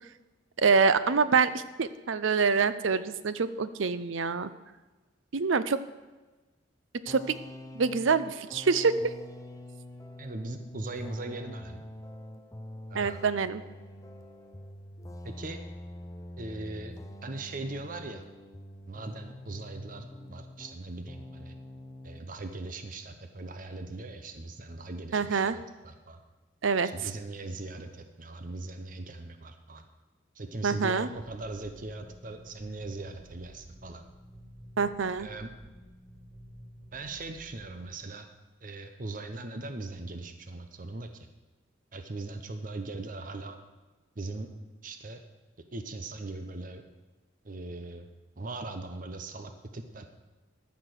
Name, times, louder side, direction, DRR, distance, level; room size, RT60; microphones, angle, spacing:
voice 1, 0.6-4.5 5.3-5.8 7.1-7.4 7.8-8.9 12.9-13.6 25.1-25.6 26.6-26.9 30.6-31.1 34.8-35.3, right 5 dB, 90° right, 14 dB, 0.6 m, -26 dB
sound 1, 7.1-20.8 21.1-22.3, left 1 dB, 15° left, 0.6 m, -45 dB
voice 2, 10.2-11.8 12.9-13.2 15.2-15.6 16.4-16.9 17.2-18.2 18.9-21.5 22.0-26.2 26.8-29.8 30.3-34.0 35.2-35.5 36.9-38.3 38.6-41.3 41.9-43.6 44.2-44.5 44.8-45.2 45.7-46.8 47.4-48.1 48.4-50.1, right 2 dB, 45° right, 7 dB, 0.8 m, -40 dB
sound 2, 30.9-37.9, equal, 25° right, 3.6 m, -51 dB
13.5 x 6.0 x 6.5 m, 1.2 s
head